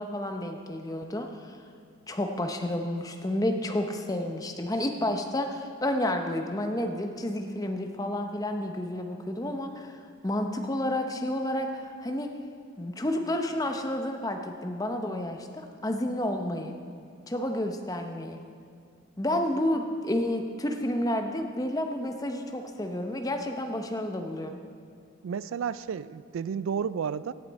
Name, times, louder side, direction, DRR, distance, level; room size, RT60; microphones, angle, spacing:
voice 1, 0.0-1.6 2.1-12.3 12.8-16.7 17.3-18.4 19.2-24.6, left 1 dB, 20° left, 4 dB, 0.7 m, -30 dB
voice 2, 25.2-27.3, right 7 dB, 85° right, 17 dB, 0.3 m, -32 dB
16.5 x 8.1 x 4.1 m, 2.3 s
head